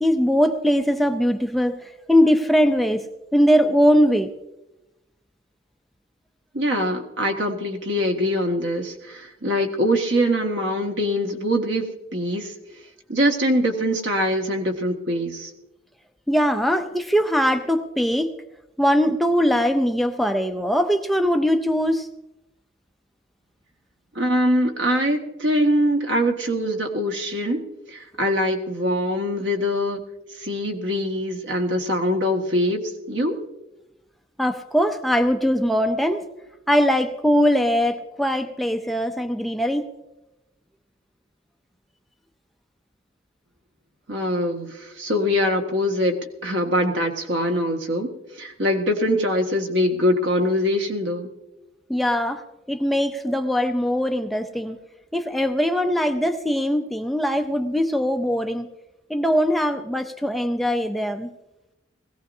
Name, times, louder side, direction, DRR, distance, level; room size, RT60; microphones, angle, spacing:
voice 1, 0.0-1.8 2.1-3.0 3.3-4.3 16.3-18.3 18.8-22.1 34.4-36.2 36.7-39.9 51.9-52.4 52.7-54.8 55.1-58.7 59.1-61.3, equal, ahead, 6 dB, 0.5 m, -21 dB
voice 2, 6.5-12.5 13.1-15.5 24.2-30.0 30.4-33.4 44.1-46.2 46.4-51.3, equal, 75° right, 3 dB, 1.7 m, -23 dB
20.5 x 16.0 x 2.7 m, 0.97 s
head